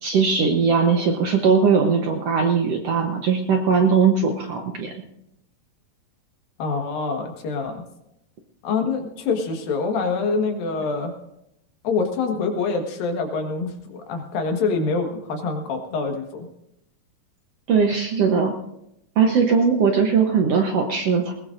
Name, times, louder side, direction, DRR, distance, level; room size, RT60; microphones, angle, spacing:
voice 1, 0.0-4.9 17.7-18.5 19.2-21.3, right 5 dB, 65° right, 2 dB, 1.6 m, -19 dB
voice 2, 6.6-7.8 8.6-11.1 11.8-16.5, left 4 dB, 85° left, 4 dB, 3.3 m, -25 dB
20.5 x 19.5 x 2.6 m, 0.83 s
omnidirectional pair, 4.0 m